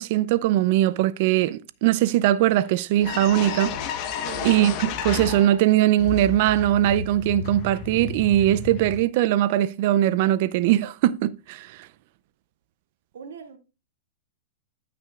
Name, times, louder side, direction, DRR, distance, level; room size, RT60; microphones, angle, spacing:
voice 1, 0.0-3.8 4.4-11.9, right 13 dB, 50° right, 0.5 m, -21 dB
sound 1, 2.6-2.7 3.0-5.7 6.0-9.0, left 7 dB, 40° left, 1.1 m, -32 dB
voice 2, 4.2-4.5 13.1-13.6, right 7 dB, 80° right, 2.0 m, -40 dB
13.5 x 6.0 x 2.4 m
hypercardioid pair, 140°, 0 cm